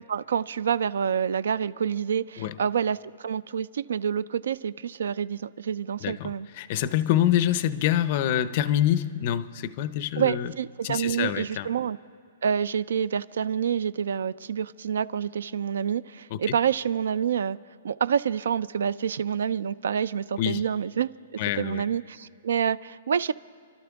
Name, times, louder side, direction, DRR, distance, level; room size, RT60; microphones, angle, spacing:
voice 1, 0.1-6.5 10.2-12.0 12.4-17.6 17.8-21.1 21.6-23.3, right 8 dB, 70° right, 0.3 m, -27 dB
voice 2, 6.0-10.5 10.8-11.7 16.3-16.5 20.4-20.6 21.4-21.8, left 11 dB, 30° left, 0.4 m, -26 dB
29.0 x 12.0 x 3.5 m
hypercardioid pair, 180°, 0 cm